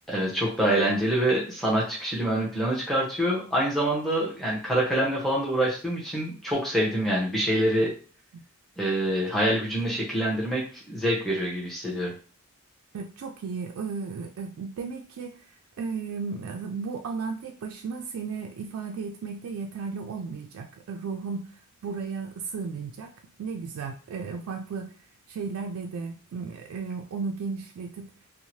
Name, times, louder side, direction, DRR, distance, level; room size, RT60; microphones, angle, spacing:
voice 1, 0.1-7.9 8.8-12.1, right 1 dB, ahead, -5 dB, 0.8 m, -26 dB
voice 2, 12.9-15.5 15.8-21.5 21.8-23.1 23.4-25.0 25.3-28.1, right 5 dB, 70° right, 3 dB, 0.3 m, -34 dB
2.7 x 2.1 x 3.0 m, 0.40 s
head